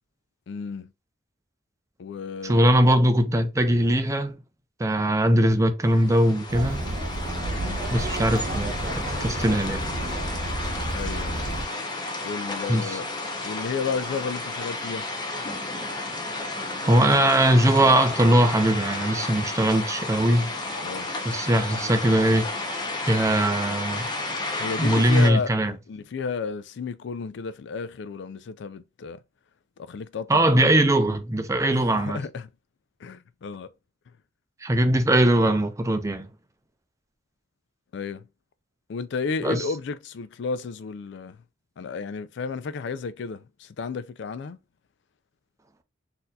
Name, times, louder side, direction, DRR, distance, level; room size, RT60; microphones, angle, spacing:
voice 1, 0.5-0.9 2.0-2.6 7.6-7.8 10.9-11.4 12.2-13.1 13.4-15.1 20.8-21.1 24.6-29.2 29.8-30.7 31.7-32.5 33.0-33.7 37.9-38.2 38.9-41.4 41.8-44.6, left 5 dB, 60° left, 0.4 m, -32 dB
voice 2, 2.4-4.4 4.8-6.8 7.9-9.8 12.7-13.0 16.8-20.5 21.2-22.5 23.0-24.1 24.8-25.7 30.3-32.2 34.6-36.3 39.4-39.6, right 1 dB, 15° right, 0.4 m, -21 dB
sound 1, 5.8-25.3, left 2 dB, 20° left, 0.7 m, -32 dB
Chatter, 6.5-11.7, right 2 dB, 40° right, 0.8 m, -31 dB
4.1 x 2.7 x 2.3 m
head